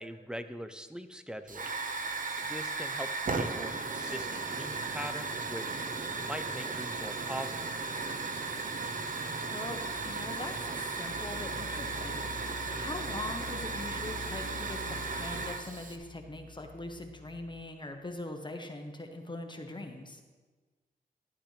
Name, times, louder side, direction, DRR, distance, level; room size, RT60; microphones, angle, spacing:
voice 1, 0.0-1.7 2.4-5.7 6.2-7.7, equal, 5° right, 10 dB, 0.7 m, -42 dB
Hiss / Fire, 1.5-16.0, right 3 dB, 50° right, 0.8 m, -36 dB
voice 2, 9.5-20.2, left 2 dB, 25° left, 4 dB, 1.2 m, -42 dB
sound 1, 9.6-18.1, left 4 dB, 85° left, 0.8 m, -47 dB
12.0 x 9.0 x 3.4 m, 1.3 s
cardioid pair, 60°, 18 cm